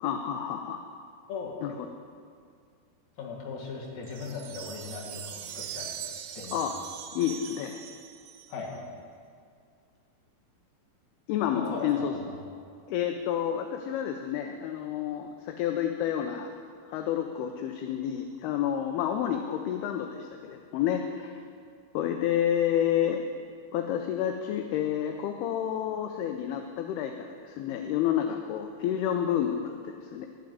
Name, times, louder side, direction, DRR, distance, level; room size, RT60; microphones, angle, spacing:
voice 1, 0.0-0.8 1.6-1.7 6.5-6.7 7.1-7.8 11.3-12.1 12.9-16.5 16.9-21.4 21.9-23.2 23.7-30.3, left 10 dB, 80° left, 5 dB, 2.4 m, -29 dB
voice 2, 3.2-5.9 6.2-6.6 8.5-8.7 11.5-12.3, left 4 dB, 55° left, -3 dB, 2.9 m, -38 dB
sound 1, 4.0-8.8, right 9 dB, 85° right, 2.9 m, -41 dB
14.5 x 4.9 x 9.2 m, 2.2 s
omnidirectional pair, 4.8 m